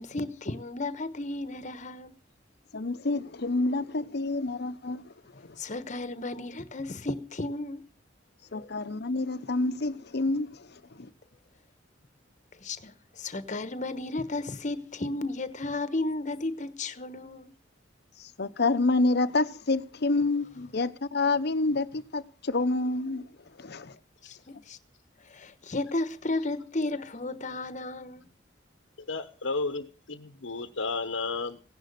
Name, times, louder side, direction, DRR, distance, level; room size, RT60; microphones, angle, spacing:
voice 1, 0.0-2.1 5.6-7.8 8.5-8.7 12.6-17.5 24.2-24.8 25.3-28.2, left 2 dB, 40° left, 1.1 m, -34 dB
voice 2, 2.7-5.6 8.5-11.1 18.2-23.2 23.5-24.0, left 3 dB, 60° left, 0.9 m, -28 dB
voice 3, 29.1-31.6, left 3 dB, 85° left, 1.0 m, -32 dB
16.5 x 11.0 x 6.7 m
head